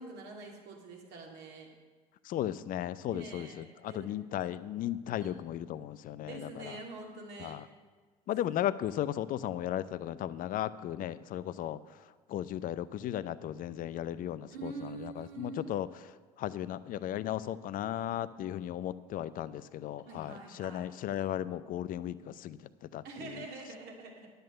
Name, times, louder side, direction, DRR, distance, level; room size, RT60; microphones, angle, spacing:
voice 1, 0.0-1.7 3.0-4.5 5.2-5.3 6.2-7.6 14.5-15.6 20.1-20.8 23.0-24.3, right 3 dB, 60° right, 0 dB, 2.6 m, -45 dB
voice 2, 2.2-6.8 7.4-7.6 8.3-11.8 12.3-15.9 16.4-22.6 22.9-23.3, left 11 dB, 45° left, 15 dB, 0.5 m, -36 dB
10.5 x 8.1 x 6.6 m, 1.4 s
hypercardioid pair, 65°, 20 cm